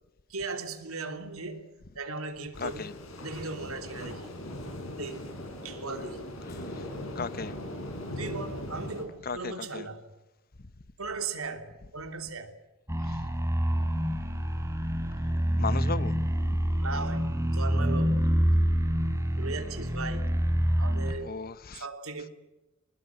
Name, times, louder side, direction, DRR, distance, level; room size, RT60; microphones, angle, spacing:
voice 1, 0.3-2.9 3.2-4.3 5.0-5.3 5.6-6.2 8.2-10.1 11.0-12.6 16.8-18.4 19.4-20.4 20.8-21.3 21.7-22.3, right 3 dB, 80° right, 3.2 m, -38 dB
sound 1, 2.5-9.0, left 1 dB, 80° left, 7.8 m, -39 dB
voice 2, 2.6-2.9 6.7-6.8 7.1-7.6 9.2-9.9 13.0-13.2 15.6-16.1 21.2-21.8, left 4 dB, 45° left, 0.8 m, -35 dB
sound 2, 12.9-21.1, equal, 15° right, 3.5 m, -27 dB
25.5 x 20.5 x 7.8 m
head